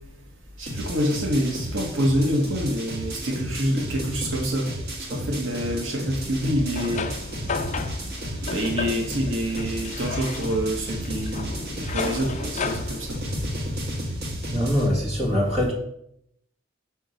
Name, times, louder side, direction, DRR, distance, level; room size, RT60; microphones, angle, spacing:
voice 1, 0.6-4.7 5.1-7.1 8.4-13.2, equal, 80° right, 2 dB, 1.1 m, -26 dB
sound 1, 0.7-14.9, equal, 55° right, 1.6 m, -33 dB
sound 2, 6.2-14.0, left 3 dB, 40° left, 0.5 m, -34 dB
voice 2, 14.5-15.7, equal, 35° right, -1 dB, 2.0 m, -23 dB
5.9 x 4.6 x 5.2 m, 0.75 s
head